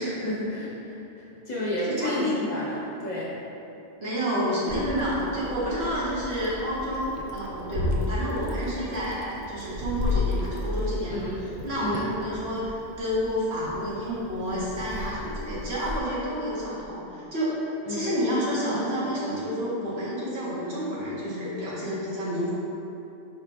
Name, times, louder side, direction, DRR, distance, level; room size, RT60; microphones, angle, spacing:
voice 1, 0.0-3.4 11.1-11.4 11.8-12.0 17.8-18.1, left 1 dB, 45° left, -8 dB, 0.9 m, -31 dB
voice 2, 1.9-2.4 4.0-17.5 17.9-22.5, equal, 75° right, -8 dB, 1.3 m, -29 dB
Meow, 4.7-16.0, left 2 dB, 55° right, 0.4 m, -33 dB
4.9 x 4.0 x 2.2 m, 2.9 s
omnidirectional pair, 1.1 m